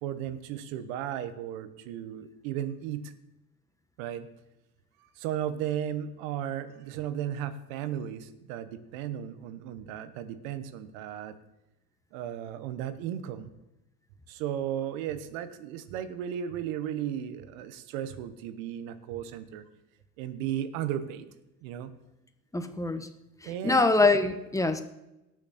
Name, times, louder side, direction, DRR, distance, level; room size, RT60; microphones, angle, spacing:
voice 1, 0.0-3.1 4.0-4.3 5.2-11.3 12.1-13.5 14.3-19.6 20.2-21.3 21.6-21.9 23.4-23.8, right 10 dB, 85° right, 12 dB, 1.2 m, -35 dB
voice 2, 22.5-23.1 23.4-24.8, left 3 dB, 10° left, 9 dB, 1.2 m, -24 dB
18.0 x 6.4 x 4.3 m, 0.93 s
supercardioid pair, 90°, 39 cm